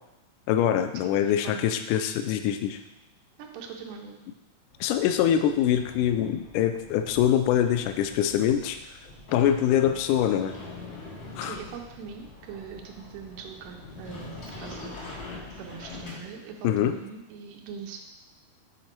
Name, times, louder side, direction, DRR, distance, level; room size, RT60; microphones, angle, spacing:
voice 1, 0.5-2.8 4.8-8.8 9.3-10.6 11.4-11.6 16.6-17.0, left 10 dB, 85° left, 8 dB, 2.0 m, -24 dB
voice 2, 1.0-1.8 3.4-4.2 11.4-18.0, right 6 dB, 85° right, 2 dB, 2.3 m, -42 dB
sound 1, 4.7-16.1, left 2 dB, 30° left, 1.3 m, -49 dB
Sliding door, 9.3-16.7, left 3 dB, 50° left, 1.2 m, -43 dB
7.8 x 4.1 x 4.4 m, 0.92 s
omnidirectional pair, 3.7 m